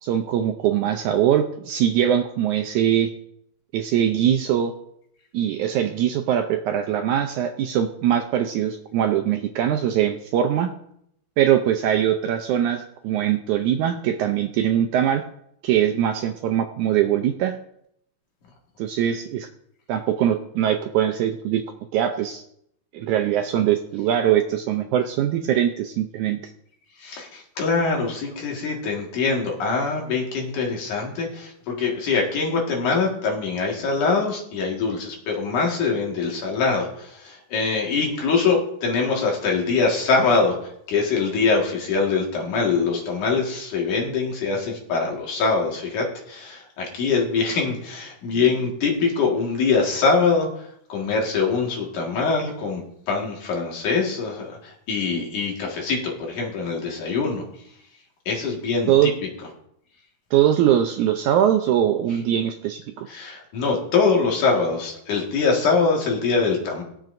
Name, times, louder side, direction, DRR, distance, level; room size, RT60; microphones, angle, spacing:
voice 1, 0.0-3.1 3.7-4.7 5.3-10.7 11.4-15.2 15.6-17.6 18.8-19.5 19.9-21.6 21.9-22.4 22.9-26.4 58.9-59.1 60.3-63.1, right 10 dB, 80° right, 6 dB, 1.8 m, -22 dB
voice 2, 27.0-57.4 58.3-59.1 63.1-66.8, left 4 dB, 65° left, 0 dB, 3.2 m, -23 dB
21.0 x 7.4 x 2.6 m, 0.73 s
omnidirectional pair, 3.9 m